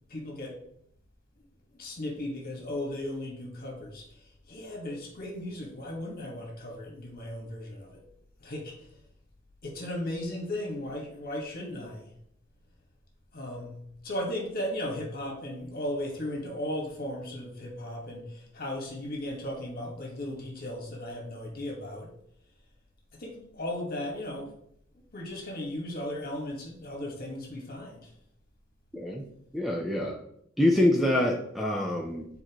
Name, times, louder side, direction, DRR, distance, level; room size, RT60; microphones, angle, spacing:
voice 1, 0.1-0.6 1.7-8.0 8.4-8.9 9.6-12.1 13.3-22.1 23.1-24.5 25.1-28.1, left 1 dB, 45° left, 0 dB, 1.7 m, -36 dB
voice 2, 28.9-29.2 29.5-30.2 30.6-32.3, left 1 dB, ahead, -1 dB, 0.6 m, -25 dB
9.1 x 4.4 x 3.0 m, 0.72 s
head